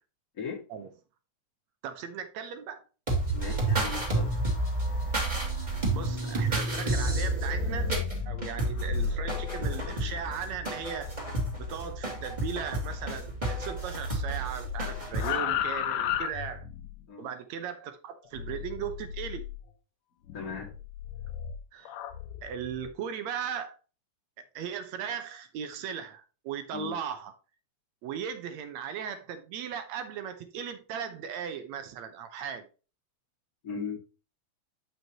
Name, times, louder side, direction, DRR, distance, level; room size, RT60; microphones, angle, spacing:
voice 1, 1.8-2.9 5.9-7.9 8.3-11.2 11.6-16.7 17.2-19.4 21.7-22.0 22.4-23.8 24.6-27.3 28.0-32.7, right 8 dB, 70° right, 2.0 m, -37 dB
sound 1, 3.1-15.4, right 2 dB, 15° right, 2.3 m, -31 dB
voice 2, 3.3-4.4 17.1-17.3 20.3-20.7 26.7-27.0 33.6-34.0, left 5 dB, 35° left, 1.9 m, -37 dB
sound 2, 6.8-13.3 13.5-17.0 18.4-19.6 20.3-22.9, left 6 dB, 85° left, 2.2 m, -35 dB
8.3 x 6.2 x 2.9 m
omnidirectional pair, 3.6 m